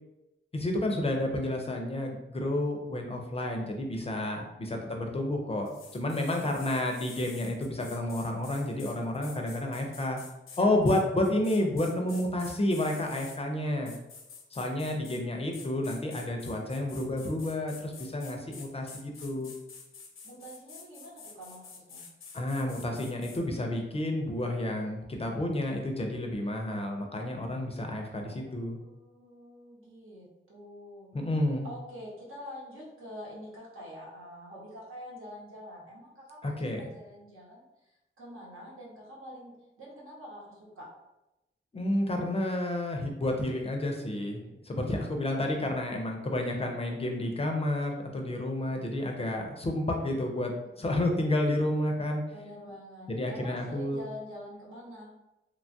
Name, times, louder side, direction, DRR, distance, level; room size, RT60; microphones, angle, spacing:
voice 1, 0.5-10.2 10.6-13.9 14.5-19.5 22.3-28.8 31.1-31.6 36.4-36.8 41.7-50.5 50.8-52.2 53.1-54.0, left 1 dB, 30° left, 2 dB, 0.4 m, -30 dB
voice 2, 4.6-4.9 6.3-6.6 20.2-22.1 28.3-31.1 31.6-37.6 38.2-40.9 48.5-48.9 50.8-51.1 52.3-55.1, equal, 85° right, -5 dB, 1.0 m, -46 dB
sound 1, 5.7-13.4 13.9-15.2 15.5-23.4, left 5 dB, 85° left, 0.5 m, -48 dB
3.0 x 2.2 x 2.6 m, 0.95 s
wide cardioid pair, 140°, 21 cm